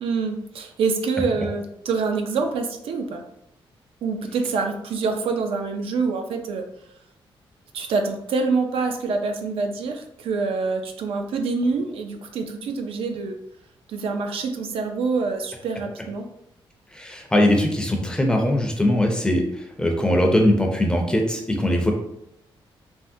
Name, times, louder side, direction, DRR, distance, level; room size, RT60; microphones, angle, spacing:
voice 1, 0.0-3.2 4.0-6.6 7.7-13.4 13.9-16.3, right 4 dB, 80° right, 4 dB, 0.4 m, -26 dB
voice 2, 16.9-21.9, left 1 dB, 10° left, 2 dB, 0.5 m, -21 dB
3.4 x 2.1 x 2.6 m, 0.80 s
cardioid pair, 125°, 9 cm